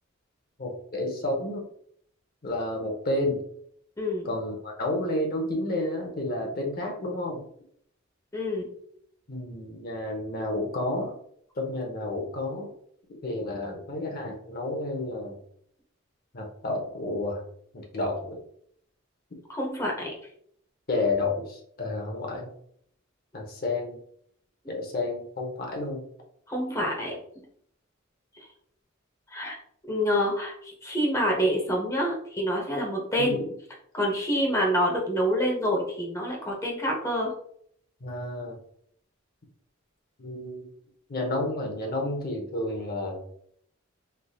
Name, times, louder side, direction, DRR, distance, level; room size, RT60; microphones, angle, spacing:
voice 1, 0.6-1.6 2.4-3.4 4.2-7.4 9.3-11.1 11.6-12.7 13.2-15.4 16.3-17.4 17.7-18.4 20.9-22.5 23.3-24.0 24.7-26.0 33.2-33.5 38.0-38.6 40.2-40.6 41.1-43.2, left 2 dB, 45° left, 1 dB, 0.8 m, -30 dB
voice 2, 8.3-8.7 19.5-20.1 26.5-27.1 29.3-29.5 29.9-33.4 33.9-37.3, equal, 15° left, -1 dB, 0.7 m, -27 dB
3.3 x 2.6 x 2.3 m, 0.67 s
head